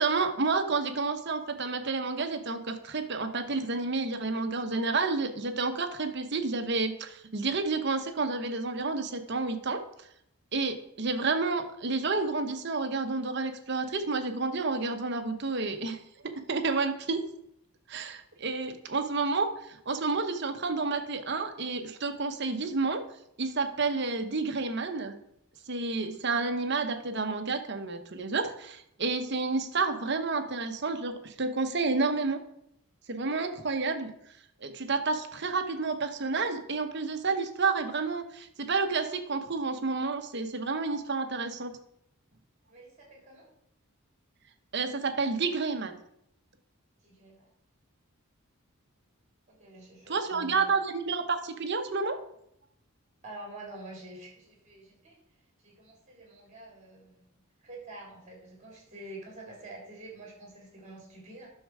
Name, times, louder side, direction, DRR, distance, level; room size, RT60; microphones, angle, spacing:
voice 1, 0.0-10.1 10.5-17.2 17.9-23.0 23.4-25.1 25.7-32.4 33.1-34.1 34.6-41.8 44.7-46.0 50.1-52.2, right 4 dB, 50° right, 7 dB, 0.9 m, -30 dB
voice 2, 42.7-43.5 47.0-47.5 49.5-50.7 53.2-55.2 55.6-57.3 57.6-61.5, right 2 dB, 30° right, -1 dB, 3.5 m, -47 dB
11.0 x 6.5 x 4.8 m, 0.76 s
head